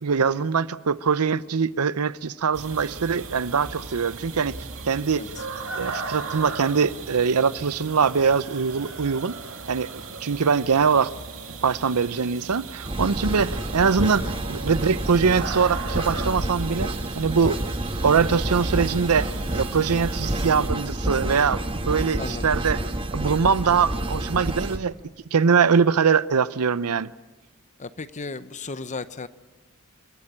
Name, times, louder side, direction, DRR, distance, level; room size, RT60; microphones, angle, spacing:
voice 1, 0.0-4.6 4.8-5.2 5.7-9.4 9.7-9.9 10.2-11.1 11.6-17.6 18.0-22.8 23.1-24.9 25.3-27.1, right 6 dB, 90° right, 0.7 m, -22 dB
sound 1, 2.5-20.7, right 4 dB, 65° right, 2.5 m, -37 dB
voice 2, 5.1-5.5 22.2-22.5 27.8-29.3, left 4 dB, 35° left, 0.8 m, -35 dB
sound 2, 12.8-24.8, right 1 dB, 25° right, 1.3 m, -29 dB
28.5 x 13.0 x 9.8 m
head